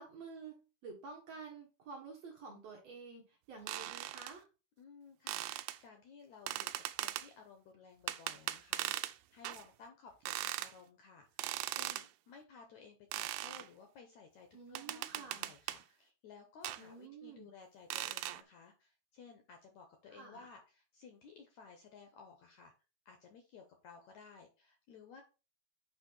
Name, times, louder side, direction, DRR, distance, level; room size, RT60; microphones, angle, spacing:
voice 1, 0.0-4.5 14.5-15.5 16.8-17.5 20.1-20.5, right 4 dB, 55° right, 1 dB, 2.1 m, -50 dB
sound 1, 3.7-4.3 5.3-5.8 6.5-7.3 8.1-9.1 9.4-9.6 10.3-10.7 11.4-12.1 13.1-13.7 14.8-15.8 16.6-16.8 17.9-18.4, right 15 dB, 85° right, 2.5 m, -39 dB
voice 2, 4.8-22.7 23.1-25.2, left 5 dB, 65° left, 4 dB, 1.9 m, -57 dB
8.7 x 3.1 x 6.2 m, 0.31 s
omnidirectional pair, 4.4 m